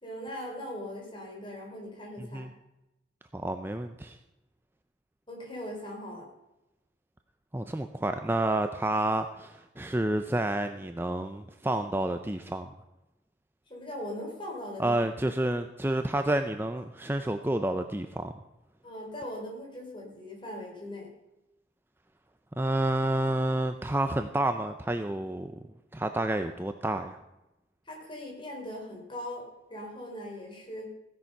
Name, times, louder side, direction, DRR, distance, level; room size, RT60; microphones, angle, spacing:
voice 1, 0.0-2.5 5.3-6.3 13.7-15.1 18.8-21.1 27.9-30.9, left 1 dB, 25° left, 0 dB, 3.8 m, -40 dB
voice 2, 3.3-4.2 7.5-12.7 14.8-18.3 22.6-25.5 25.9-27.2, right 1 dB, 10° right, 7 dB, 0.5 m, -29 dB
15.5 x 10.5 x 5.5 m, 0.96 s
head